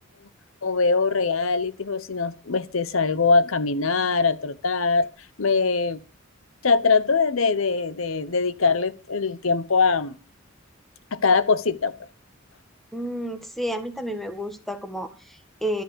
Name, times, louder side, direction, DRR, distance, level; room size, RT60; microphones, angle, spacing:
voice 1, 0.6-5.1 5.4-6.0 6.6-10.1 11.1-12.0, left 4 dB, 85° left, 1.0 m, -22 dB
voice 2, 12.9-15.8, equal, ahead, 1.6 m, -31 dB
13.0 x 7.9 x 8.0 m
head